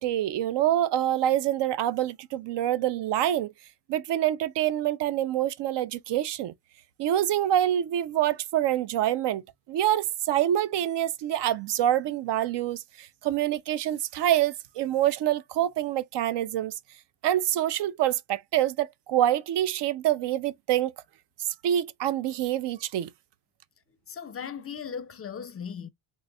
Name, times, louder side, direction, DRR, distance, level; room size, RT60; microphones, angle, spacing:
voice 1, 0.0-3.5 3.9-6.5 7.0-9.4 9.7-16.7 17.2-20.9 21.6-23.1, right 12 dB, 65° right, 0.5 m, -26 dB
voice 2, 24.1-25.9, left 7 dB, 30° left, 0.4 m, -37 dB
3.9 x 3.2 x 2.2 m
cardioid pair, 130°, 45 cm